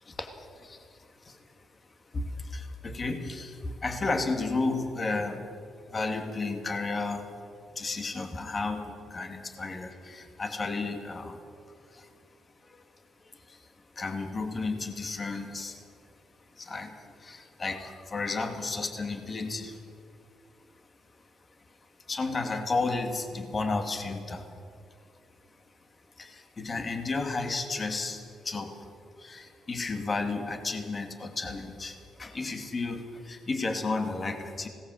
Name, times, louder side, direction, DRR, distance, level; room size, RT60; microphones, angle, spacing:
voice 1, 0.0-1.4 2.1-5.5 5.9-7.3 7.7-11.4 11.9-12.1 12.6-12.8 13.2-15.9 16.5-19.8 21.8-24.5 26.2-28.9 29.2-34.7, left 3 dB, 35° left, 5 dB, 2.4 m, -33 dB
20.0 x 18.0 x 8.0 m, 2.4 s
cardioid pair, 90°, 0 cm